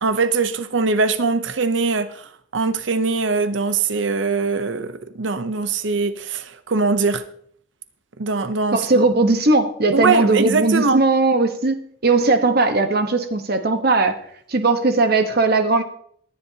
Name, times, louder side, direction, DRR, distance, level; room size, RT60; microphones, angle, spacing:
voice 1, 0.0-7.2 8.2-9.0 9.9-11.0, right 4 dB, 70° right, 0.7 m, -22 dB
voice 2, 8.7-14.2 14.5-15.8, right 3 dB, 55° right, 1.2 m, -18 dB
19.0 x 10.5 x 2.8 m
head